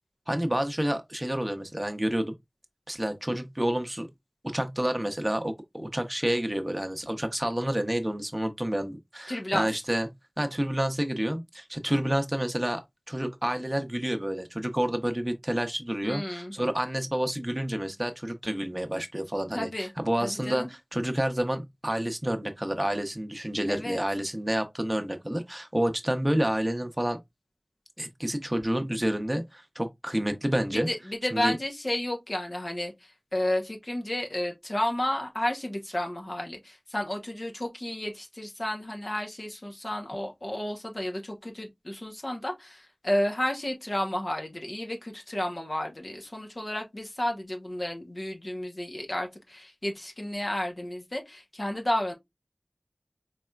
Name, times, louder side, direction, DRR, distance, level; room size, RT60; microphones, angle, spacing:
voice 1, 0.3-2.3 2.9-4.1 4.4-10.1 10.4-12.8 13.1-27.2 28.0-30.9 31.3-31.5, right 1 dB, 25° right, 0.7 m, -29 dB
voice 2, 9.3-9.7 16.0-16.5 19.5-19.9 20.2-20.7 23.7-24.0 30.7-52.1, left 1 dB, 55° left, 0.9 m, -32 dB
4.1 x 3.2 x 2.3 m
wide cardioid pair, 40°, 0 cm